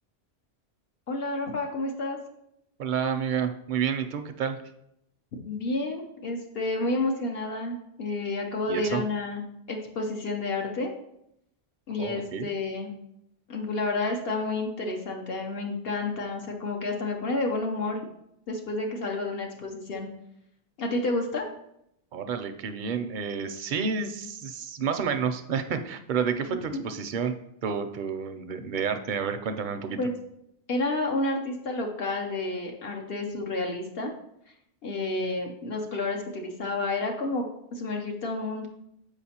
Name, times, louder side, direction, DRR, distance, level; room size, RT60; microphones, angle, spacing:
voice 1, 1.1-2.2 5.5-10.9 11.9-12.9 13.5-18.0 18.5-20.1 20.8-21.5 26.5-26.6 30.0-30.1 30.7-34.1 34.8-38.7, left 2 dB, 65° left, 1 dB, 0.9 m, -30 dB
voice 2, 2.8-4.6 8.7-9.0 12.0-12.5 22.1-27.3 27.6-30.0, right 6 dB, 60° right, 8 dB, 0.6 m, -30 dB
7.1 x 4.9 x 2.8 m, 0.78 s
omnidirectional pair, 1.1 m